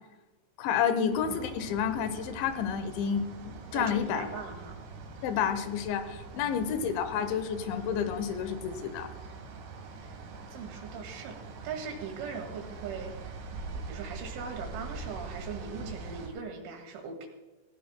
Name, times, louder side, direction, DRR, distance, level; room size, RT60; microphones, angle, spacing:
voice 1, 0.6-3.3 3.7-4.4 5.2-9.1, left 7 dB, 75° left, 10 dB, 3.0 m, -30 dB
sound 1, 1.1-16.3, right 4 dB, 85° right, 5.1 m, -43 dB
voice 2, 3.7-4.8 6.4-6.6 10.0-10.2 10.5-17.3, right 5 dB, 70° right, 3 dB, 4.2 m, -40 dB
17.5 x 16.0 x 2.2 m, 1.2 s
omnidirectional pair, 6.0 m